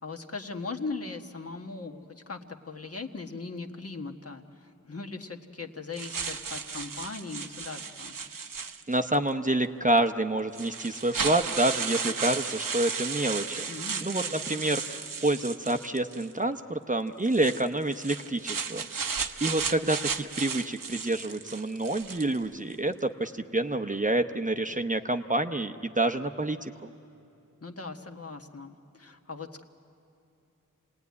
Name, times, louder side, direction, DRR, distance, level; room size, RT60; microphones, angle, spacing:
voice 1, 0.0-8.2 13.7-14.6 27.6-29.6, left 3 dB, 45° left, 4 dB, 1.4 m, -39 dB
sound 1, 6.0-9.1 10.0-10.1 10.5-16.3 17.2-22.4, right 5 dB, 80° right, 0.9 m, -34 dB
voice 2, 8.9-13.7 14.0-26.7, right 2 dB, 25° right, 7 dB, 0.8 m, -28 dB
28.0 x 19.0 x 9.5 m, 2.7 s
wide cardioid pair, 70°, 33 cm